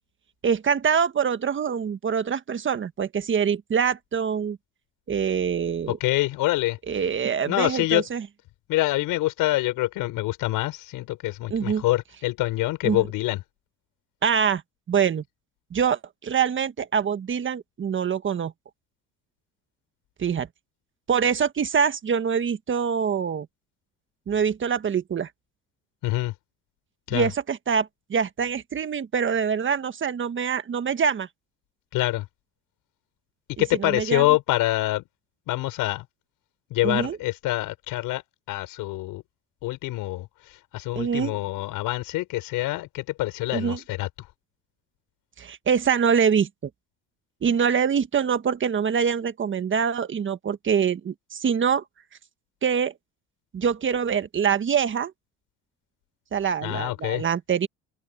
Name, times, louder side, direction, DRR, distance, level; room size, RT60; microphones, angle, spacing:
voice 1, 0.4-4.6 5.1-6.0 6.9-8.3 11.5-11.8 12.8-13.0 14.2-14.6 14.9-15.2 15.7-18.5 20.2-20.5 21.1-23.5 24.3-25.3 27.1-31.3 33.6-34.2 36.8-37.2 40.9-41.4 43.5-43.8 45.4-46.7 47.4-51.8 52.6-52.9 53.5-55.1 56.3-57.7, right 7 dB, 35° right, 1.5 m, -24 dB
voice 2, 5.9-6.8 7.4-8.0 8.7-13.4 26.0-26.3 27.1-27.3 31.9-32.3 33.6-35.0 35.5-36.1 36.7-38.2 38.5-39.2 39.6-40.3 40.7-44.1 56.6-57.2, left 17 dB, 80° left, 6.0 m, -25 dB
cardioid pair, 105°, 33 cm